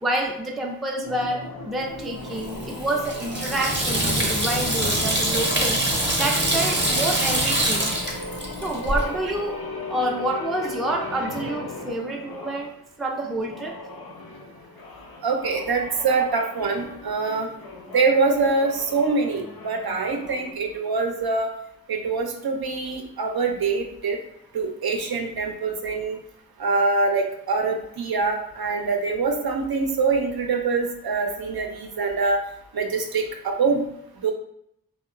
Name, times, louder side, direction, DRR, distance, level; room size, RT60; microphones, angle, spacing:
voice 1, 0.0-5.8 6.2-7.9 8.6-9.6 9.9-12.7 13.0-13.7, right 1 dB, ahead, 0 dB, 0.3 m, -28 dB
sound 1, 1.0-12.7 13.4-20.5, left 2 dB, 75° left, 0.5 m, -37 dB
Water tap faucet / Sink (filling or washing), 2.3-9.1, right 1 dB, 30° right, 0.6 m, -24 dB
voice 2, 15.2-17.5 17.9-21.5 21.9-24.2 24.5-26.2 26.6-32.4 32.7-33.8 34.2-34.3, right 4 dB, 85° right, 3 dB, 0.5 m, -24 dB
2.8 x 2.1 x 2.4 m, 0.75 s
wide cardioid pair, 45°, 36 cm